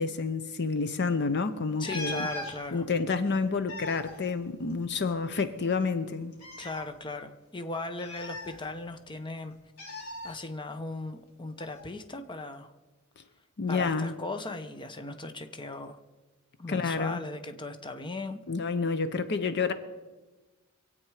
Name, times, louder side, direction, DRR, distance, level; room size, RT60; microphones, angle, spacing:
voice 1, 0.0-2.3 2.7-6.3 13.6-14.1 16.7-17.2 18.5-19.7, left 4 dB, 55° left, 0.7 m, -29 dB
sound 1, 1.8-2.6 3.5-5.1 5.4-5.5 6.3-6.8 8.0-9.0 9.8-10.3 11.6-11.8, left 2 dB, 85° left, 3.3 m, -39 dB
voice 2, 1.8-2.9 6.6-9.5 9.8-12.7 13.7-16.0 16.6-18.4, left 2 dB, 20° left, 0.9 m, -38 dB
24.0 x 8.7 x 4.9 m
head